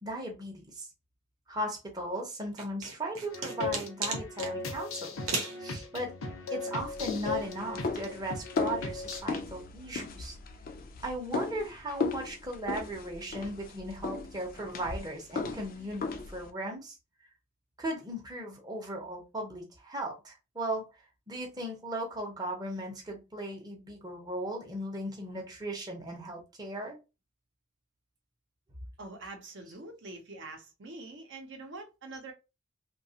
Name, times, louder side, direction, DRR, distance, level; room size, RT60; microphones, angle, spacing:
voice 1, 0.0-0.9 1.5-5.2 5.6-6.1 6.5-10.4 11.0-17.0 17.8-20.9 21.3-27.0, right 1 dB, 20° right, 0.6 m, -37 dB
sound 1, 2.6-4.5 5.3-5.6, right 3 dB, 90° right, 0.8 m, -34 dB
sound 2, 3.3-9.2, left 4 dB, 80° left, 0.7 m, -37 dB
sound 3, 6.8-16.5, left 4 dB, 45° left, 0.4 m, -37 dB
voice 2, 29.0-32.3, right 2 dB, 60° right, 0.6 m, -45 dB
2.7 x 2.2 x 2.7 m
head